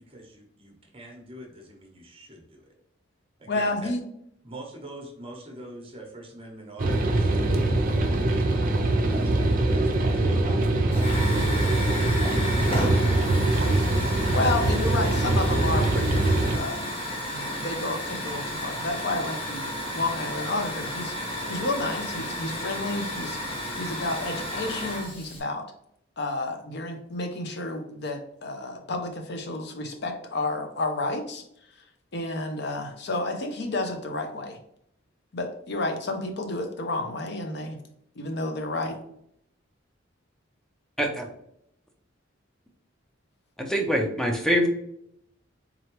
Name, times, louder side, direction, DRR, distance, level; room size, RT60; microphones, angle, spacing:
voice 1, 0.0-2.6 3.4-3.9 4.4-8.2 8.7-13.4, right 2 dB, 30° right, 0 dB, 0.9 m, -43 dB
voice 2, 3.5-4.0 14.3-16.2 16.5-16.9 17.3-19.7 19.9-21.1 21.5-23.4 23.8-25.6 26.2-31.4 32.1-34.6 35.3-37.8 38.2-39.0, left 2 dB, 55° left, 5 dB, 0.7 m, -30 dB
sound 1, 6.8-16.6, right 2 dB, 45° right, 0.5 m, -23 dB
Hiss / Fire, 10.9-25.4, left 1 dB, 30° left, 1.1 m, -33 dB
voice 3, 43.6-44.7, equal, 5° left, 2 dB, 0.6 m, -24 dB
3.7 x 3.2 x 3.0 m, 0.74 s
head